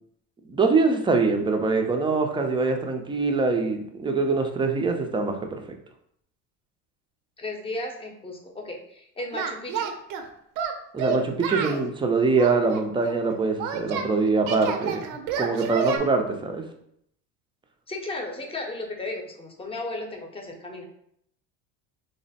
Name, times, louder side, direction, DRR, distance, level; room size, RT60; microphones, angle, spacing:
voice 1, 0.5-5.6 10.9-15.0 15.4-16.6, right 4 dB, 15° right, 4 dB, 0.4 m, -24 dB
voice 2, 7.4-9.9 17.9-20.8, left 2 dB, 15° left, 2 dB, 0.7 m, -35 dB
Singing, 9.3-10.2 10.6-11.8 12.4-14.1 14.5-16.0, right 6 dB, 70° right, 0.6 m, -29 dB
3.2 x 2.0 x 4.0 m, 0.71 s
supercardioid pair, 95°, 35 cm